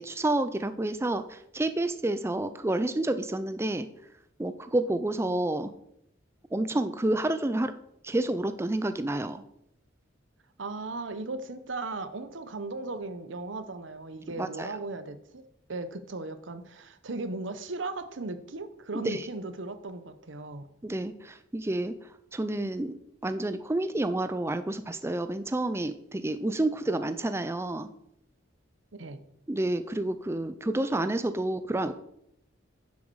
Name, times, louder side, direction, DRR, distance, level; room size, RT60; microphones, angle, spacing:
voice 1, 0.0-3.9 4.4-5.7 6.5-7.7 8.0-9.4 14.4-14.7 18.9-19.2 20.8-21.9 22.3-22.9 23.2-27.9 29.5-31.9, right 1 dB, 15° right, 11 dB, 0.4 m, -29 dB
voice 2, 10.6-15.4 15.7-20.7 28.9-29.2, right 3 dB, 80° right, 11 dB, 0.9 m, -37 dB
10.5 x 7.2 x 4.7 m, 0.76 s
head